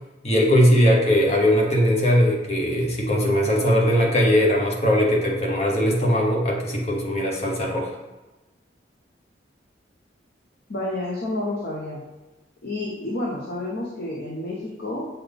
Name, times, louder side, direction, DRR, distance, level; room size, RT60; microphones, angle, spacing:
voice 1, 0.2-7.9, equal, 35° left, -1 dB, 1.1 m, -20 dB
voice 2, 10.7-12.0 12.6-15.1, left 1 dB, 60° left, -4 dB, 0.8 m, -29 dB
6.9 x 3.9 x 3.5 m, 1.1 s
head